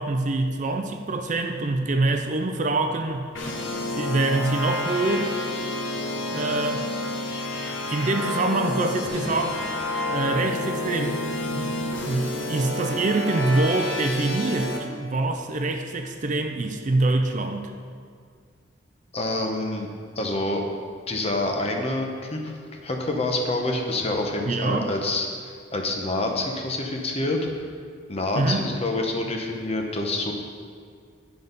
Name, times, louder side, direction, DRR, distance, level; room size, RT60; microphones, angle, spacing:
voice 1, 0.0-3.2 4.0-5.3 6.3-6.8 7.9-9.6 10.1-11.2 11.5-17.7 24.5-24.9 28.4-28.6, right 2 dB, 40° right, 5 dB, 0.4 m, -25 dB
sound 1, 3.3-14.8, left 1 dB, 70° left, 1.0 m, -29 dB
voice 2, 19.1-19.9 20.2-20.6 21.1-22.6 22.8-27.4 28.1-30.3, left 2 dB, 30° left, 2 dB, 0.8 m, -27 dB
10.0 x 3.9 x 5.3 m, 2.1 s
head